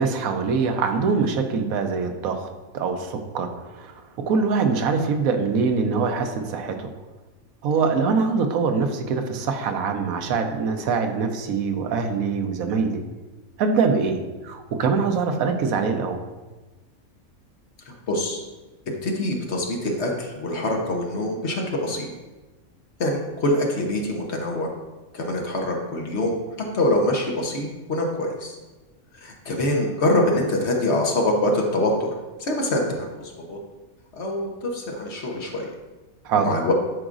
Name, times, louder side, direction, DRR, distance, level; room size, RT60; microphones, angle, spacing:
voice 1, 0.0-2.5 2.7-3.9 4.3-6.9 7.6-13.0 13.6-16.2 36.2-36.5, right 5 dB, 80° right, 6 dB, 1.1 m, -23 dB
voice 2, 17.9-18.4 19.0-22.1 23.0-24.7 25.1-26.3 26.7-28.6 29.1-32.1 32.4-33.1 33.5-33.6 34.2-35.7 36.3-36.7, left 1 dB, 55° left, 1 dB, 1.2 m, -24 dB
11.0 x 4.8 x 2.5 m, 1.2 s
omnidirectional pair, 1.5 m